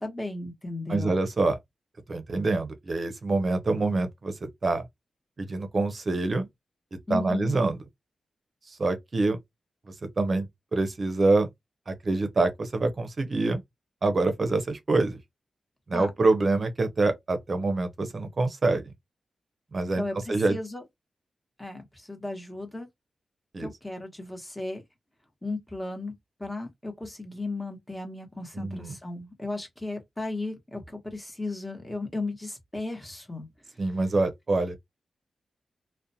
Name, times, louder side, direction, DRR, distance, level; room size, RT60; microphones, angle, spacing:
voice 1, 0.0-1.2 7.1-7.5 15.9-16.1 20.0-20.8 21.6-22.9 23.6-24.8 25.4-26.1 26.4-33.5, left 2 dB, 10° left, 1.0 m, -35 dB
voice 2, 0.9-1.6 2.1-4.8 5.4-6.5 6.9-7.8 8.7-9.4 10.0-10.5 10.7-11.5 11.9-13.6 14.0-15.2 15.9-18.9 19.7-20.0 20.3-20.6 23.5-23.7 28.6-28.9 33.8-34.8, right 3 dB, 50° right, 0.5 m, -26 dB
2.4 x 2.1 x 2.7 m
cardioid pair, 70°, 0 cm